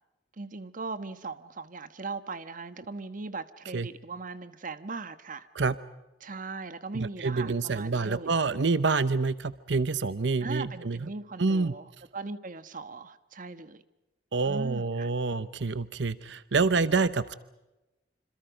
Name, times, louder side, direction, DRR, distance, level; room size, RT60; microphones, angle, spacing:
voice 1, 0.4-5.5 6.2-8.4 10.4-13.8 14.4-15.1, right 3 dB, 50° right, 12 dB, 1.2 m, -39 dB
voice 2, 6.9-11.1 11.4-11.7 14.3-17.3, right 4 dB, 90° right, 15 dB, 0.8 m, -27 dB
27.0 x 27.0 x 5.1 m, 1.0 s
head